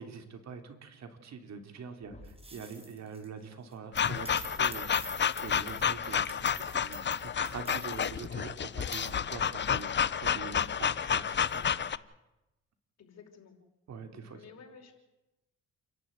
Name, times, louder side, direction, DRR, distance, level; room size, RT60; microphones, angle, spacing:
voice 1, 0.0-5.1 5.4-9.9 10.2-11.9 13.9-14.4, right 5 dB, 60° right, 7 dB, 3.4 m, -44 dB
sound 1, 1.7-1.8 2.0-2.7 4.4-4.5 6.3-6.5 7.3-7.4, left 1 dB, 20° left, 4.0 m, -53 dB
sound 2, 2.3-3.3 3.7-8.1 8.9-9.1, right 2 dB, 20° right, 5.0 m, -46 dB
sound 3, 3.9-12.0, left 8 dB, 40° left, 0.8 m, -30 dB
voice 2, 13.0-13.6 14.0-14.9, left 6 dB, 60° left, 3 dB, 5.3 m, -53 dB
28.5 x 11.5 x 9.6 m, 0.98 s
cardioid pair, 90°, 30 cm